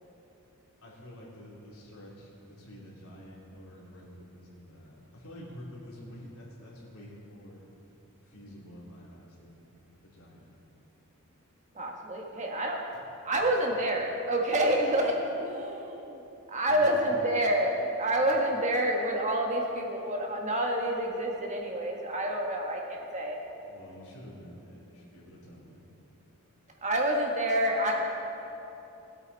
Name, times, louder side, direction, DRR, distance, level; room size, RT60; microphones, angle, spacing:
voice 1, 0.8-7.7 8.2-9.7 10.0-10.5 13.3-13.4 16.7-17.3 18.2-18.3 23.7-25.8, equal, 85° left, -5 dB, 3.3 m, -48 dB
voice 2, 11.7-12.8 13.2-16.2 16.5-23.4 26.8-27.9, right 1 dB, 35° right, 0 dB, 1.6 m, -28 dB
20.5 x 8.2 x 4.1 m, 3.0 s
head